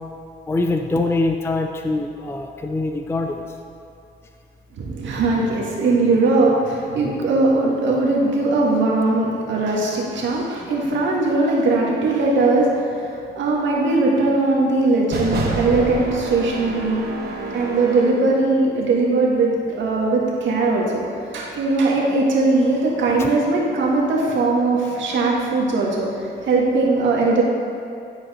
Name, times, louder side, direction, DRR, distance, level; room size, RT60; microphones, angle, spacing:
voice 1, 0.5-3.4 23.2-23.3, left 2 dB, 10° left, 5 dB, 0.4 m, -23 dB
voice 2, 4.7-17.0 17.5-21.0 21.3-27.4, right 3 dB, 70° right, -3 dB, 1.7 m, -20 dB
sound 1, 15.1-18.3, right 2 dB, 55° right, 1.2 m, -28 dB
10.5 x 4.8 x 4.2 m, 2.5 s
cardioid pair, 90°, 20 cm